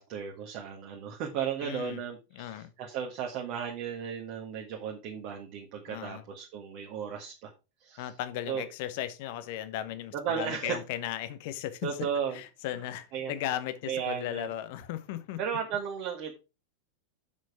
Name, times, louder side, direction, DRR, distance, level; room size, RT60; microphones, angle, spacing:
voice 1, 0.0-7.5 7.8-8.1 8.5-8.6 10.1-10.8 11.8-12.4 13.1-13.3 13.9-14.5 15.4-16.4, right 7 dB, 40° right, 1.6 m, -35 dB
voice 2, 1.6-2.0 2.3-2.7 5.9-6.2 8.0-11.9 12.3-15.4, left 12 dB, 50° left, 1.0 m, -36 dB
7.5 x 6.3 x 4.8 m
figure-of-eight pair, 90°, 0 cm